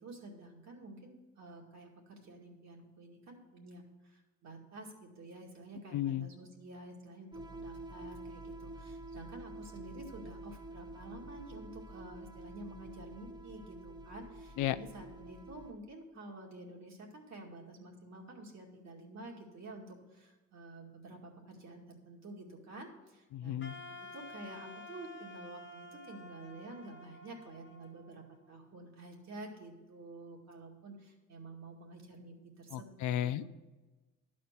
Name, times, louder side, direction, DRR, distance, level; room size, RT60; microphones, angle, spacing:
voice 1, 0.0-23.6 24.0-33.5, right 2 dB, 65° right, 0 dB, 2.2 m, -50 dB
voice 2, 5.9-6.3 14.6-14.8 23.3-23.7 32.7-33.5, left 12 dB, 80° left, 13 dB, 0.5 m, -34 dB
sound 1, 7.3-15.7, right 2 dB, 15° right, 0.7 m, -48 dB
Wind instrument woodwind instrument, 23.6-28.6, left 2 dB, 40° left, 1.1 m, -51 dB
12.0 x 4.3 x 8.0 m, 1.2 s
cardioid pair, 90°, 29 cm